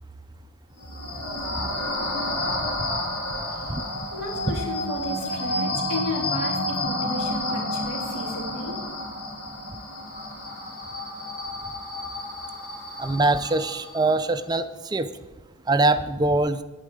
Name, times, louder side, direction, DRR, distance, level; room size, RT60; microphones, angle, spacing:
sound 1, 0.8-14.2, left 1 dB, 90° left, 3.6 m, -30 dB
voice 1, 4.1-8.8, left 1 dB, 70° left, -2 dB, 3.5 m, -33 dB
voice 2, 13.0-15.1 15.7-16.6, right 2 dB, 20° right, 10 dB, 0.4 m, -23 dB
10.5 x 9.6 x 4.9 m, 1.2 s
head